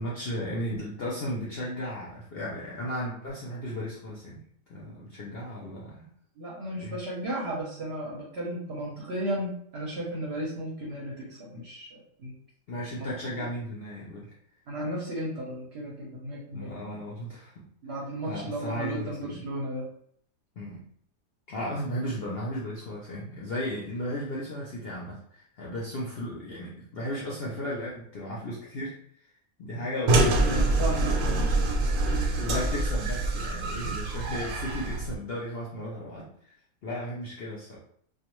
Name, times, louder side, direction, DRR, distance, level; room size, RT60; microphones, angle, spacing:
voice 1, 0.0-4.4 4.7-6.1 6.8-7.0 12.7-14.3 16.5-17.6 18.2-19.5 20.6-20.8 21.5-28.9 29.6-30.7 31.0-31.6 32.4-36.5 36.8-37.8, equal, 65° left, -5 dB, 0.6 m, -35 dB
voice 2, 6.4-12.3 13.0-13.1 13.4-13.5 14.7-16.7 17.8-19.9 30.0-30.4 30.8-31.4 32.5-32.6, right 1 dB, 60° right, -3 dB, 0.7 m, -34 dB
sound 1, 30.1-35.2, right 2 dB, 90° right, 1.1 m, -25 dB
2.4 x 2.3 x 2.9 m, 0.64 s
omnidirectional pair, 1.6 m